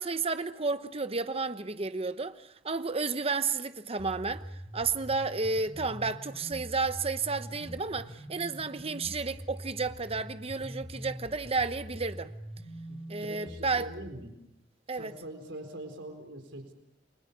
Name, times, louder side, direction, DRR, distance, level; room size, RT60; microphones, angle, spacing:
voice 1, 0.0-4.4 4.7-12.3 13.1-13.9 14.9-15.1, right 4 dB, 35° right, 1.0 m, -32 dB
sound 1, 4.0-14.1, equal, 20° left, 6.8 m, -44 dB
voice 2, 12.9-14.3 14.9-16.7, right 1 dB, 75° right, 4.3 m, -43 dB
29.5 x 23.5 x 6.8 m
head